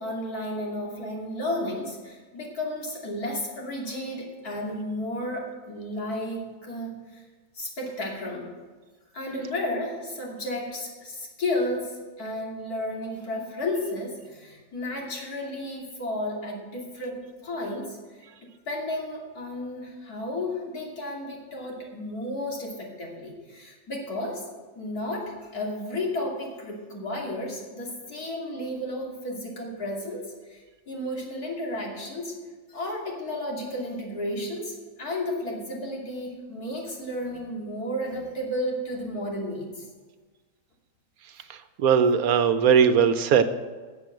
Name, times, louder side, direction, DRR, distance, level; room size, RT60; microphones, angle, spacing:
voice 1, 0.0-7.2 7.5-8.5 9.1-18.2 18.7-24.4 24.7-32.4 32.7-39.7, left 1 dB, 85° left, -2 dB, 3.3 m, -33 dB
voice 2, 41.8-43.4, right 7 dB, 75° right, 10 dB, 1.3 m, -19 dB
12.5 x 7.6 x 7.9 m, 1.4 s
omnidirectional pair, 1.6 m